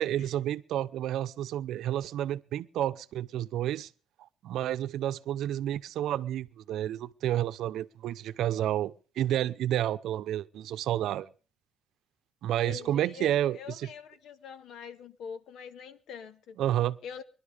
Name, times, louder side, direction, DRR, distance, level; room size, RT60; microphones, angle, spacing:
voice 1, 0.0-3.9 4.4-11.3 12.4-13.9 16.6-17.0, right 12 dB, 65° right, 0.8 m, -30 dB
voice 2, 12.5-16.6 17.0-17.2, left 7 dB, 65° left, 1.4 m, -44 dB
22.0 x 12.0 x 5.1 m
cardioid pair, 145°, 0 cm